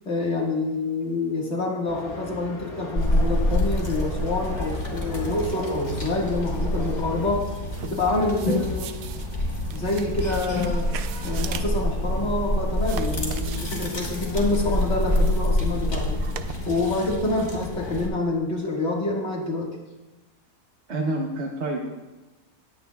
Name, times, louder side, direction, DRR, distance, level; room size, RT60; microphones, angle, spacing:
voice 1, 0.1-7.5 7.9-8.9 9.7-10.9 11.2-16.2 16.7-19.7, left 2 dB, 45° left, -1 dB, 2.0 m, -27 dB
sound 1, 1.9-7.3, left 2 dB, 65° left, 2.0 m, -39 dB
sound 2, 3.0-18.1, left 1 dB, 30° left, 1.5 m, -27 dB
sound 3, 7.7-16.5, right 9 dB, 75° right, 1.0 m, -41 dB
voice 2, 20.9-21.9, right 2 dB, 50° right, 0 dB, 1.1 m, -28 dB
19.0 x 8.7 x 2.3 m, 1.1 s
omnidirectional pair, 1.6 m